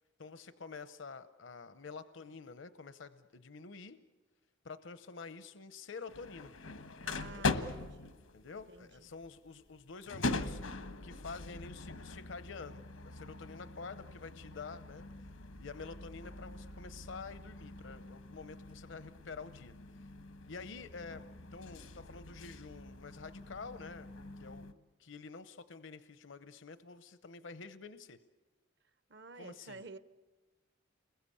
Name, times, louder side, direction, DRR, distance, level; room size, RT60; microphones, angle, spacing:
voice 1, 0.2-4.0 4.6-6.5 7.3-7.5 8.3-15.3 15.6-20.1 20.5-21.2 21.5-24.1 24.4-24.7 25.0-28.2 29.3-29.8, left 4 dB, 70° left, 0.7 m, -48 dB
sound 1, 6.1-24.7, left 3 dB, 90° left, 1.3 m, -42 dB
voice 2, 7.0-8.1 8.7-9.1 29.1-30.0, right 3 dB, 55° right, 0.9 m, -51 dB
29.0 x 21.5 x 8.5 m
head